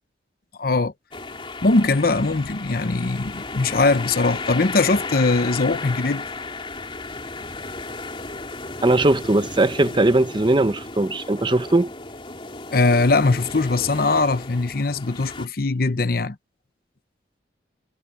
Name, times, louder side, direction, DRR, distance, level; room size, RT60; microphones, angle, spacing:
voice 1, 0.6-0.9 1.6-6.3 12.7-16.4, left 3 dB, 55° left, 0.9 m, -21 dB
sound 1, 1.1-15.5, left 3 dB, 30° left, 3.3 m, -34 dB
voice 2, 8.8-11.9, right 2 dB, 25° right, 0.8 m, -19 dB
head